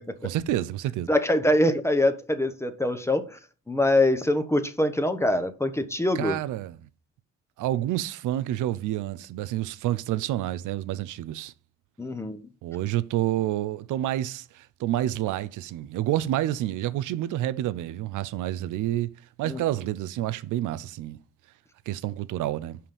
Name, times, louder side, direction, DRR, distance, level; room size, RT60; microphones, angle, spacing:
voice 1, 0.2-1.1 6.2-6.8 7.6-11.5 12.6-19.1 19.4-21.2 21.9-22.8, right 13 dB, 85° right, 0.6 m, -29 dB
voice 2, 1.1-3.4 3.7-6.4 12.0-12.4 19.4-19.6, left 1 dB, 10° left, 0.9 m, -24 dB
5.7 x 5.1 x 5.5 m
cardioid pair, 90°, 30 cm